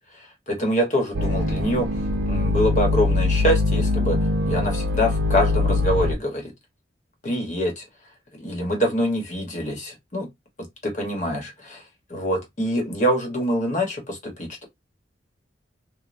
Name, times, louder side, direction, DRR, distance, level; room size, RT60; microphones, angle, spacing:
voice 1, 0.1-1.9 2.3-6.5 7.2-7.9 8.3-10.3 10.8-11.8 12.1-14.6, equal, 40° left, 1.0 m, -25 dB
sound 1, 1.1-6.1, left 2 dB, 80° right, 0.6 m, -22 dB
3.1 x 2.1 x 2.5 m
head